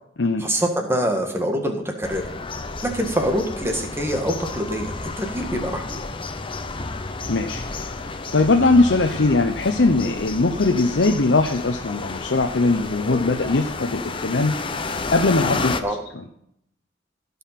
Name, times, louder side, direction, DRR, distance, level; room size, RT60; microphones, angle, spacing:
voice 1, 0.4-2.2 2.8-6.0 15.8-16.0, equal, 15° right, 3 dB, 1.7 m, -25 dB
sound 1, 2.0-15.8, left 3 dB, 30° left, 0.7 m, -31 dB
voice 2, 7.3-15.9 16.1-16.2, left 3 dB, 75° left, 3 dB, 0.8 m, -21 dB
16.0 x 5.6 x 5.8 m, 0.73 s
head